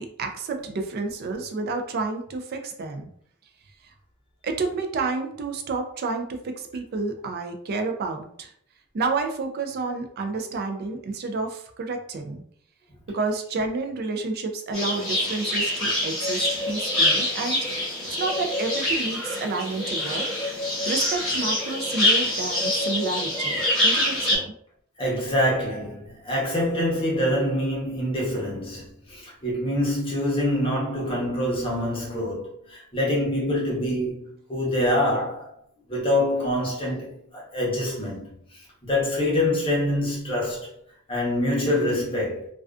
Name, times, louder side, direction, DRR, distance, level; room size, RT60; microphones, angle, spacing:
voice 1, 0.0-3.1 4.4-8.5 8.9-12.4 13.1-17.6 18.2-20.3 20.9-24.5, right 3 dB, 45° right, 0.3 m, -30 dB
sound 1, 14.7-24.4, left 1 dB, 5° left, 1.0 m, -25 dB
voice 2, 25.0-35.5 35.9-40.7 41.1-42.5, left 1 dB, 25° left, 0.8 m, -25 dB
2.4 x 2.3 x 2.3 m
head